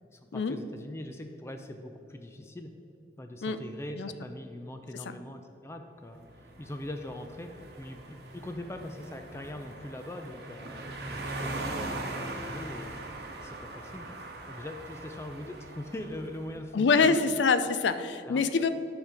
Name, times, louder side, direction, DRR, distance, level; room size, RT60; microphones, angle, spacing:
voice 1, 0.1-2.7 3.2-14.2 14.5-17.2 18.2-18.4, left 1 dB, 15° left, 6 dB, 0.4 m, -42 dB
sound 1, 6.2-16.5, right 2 dB, 65° right, 1.0 m, -40 dB
voice 2, 16.7-18.7, left 4 dB, 85° left, 11 dB, 0.5 m, -25 dB
9.0 x 5.2 x 4.8 m, 2.9 s
head